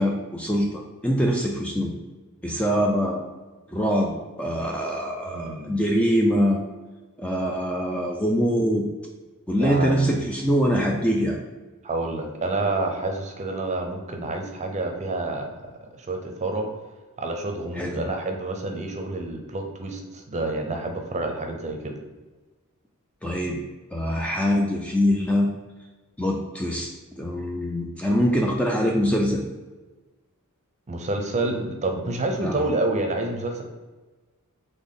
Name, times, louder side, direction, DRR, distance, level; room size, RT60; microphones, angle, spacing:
voice 1, 0.0-1.9 2.4-3.2 3.7-4.1 4.4-6.6 7.2-8.8 9.5-11.4 17.8-18.0 23.2-23.6 23.9-25.5 26.2-26.9 27.1-29.4 32.4-32.6, equal, 5° left, 0 dB, 0.4 m, -23 dB
voice 2, 5.2-5.8 9.6-10.3 11.8-15.6 16.0-16.7 17.2-22.0 30.9-33.6, right 2 dB, 30° right, 4 dB, 0.6 m, -28 dB
4.1 x 3.4 x 3.7 m, 1.2 s
head